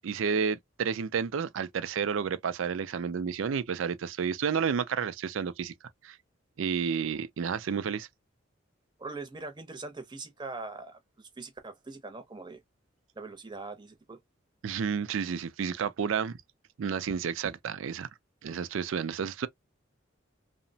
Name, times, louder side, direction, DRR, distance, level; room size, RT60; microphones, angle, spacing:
voice 1, 0.0-5.7 6.0-6.2 6.6-8.1 14.6-16.4 16.8-18.1 18.4-19.5, right 6 dB, 75° right, 0.4 m, -31 dB
voice 2, 9.0-12.6 13.2-14.2, right 3 dB, 20° right, 0.6 m, -42 dB
2.9 x 2.1 x 2.6 m
head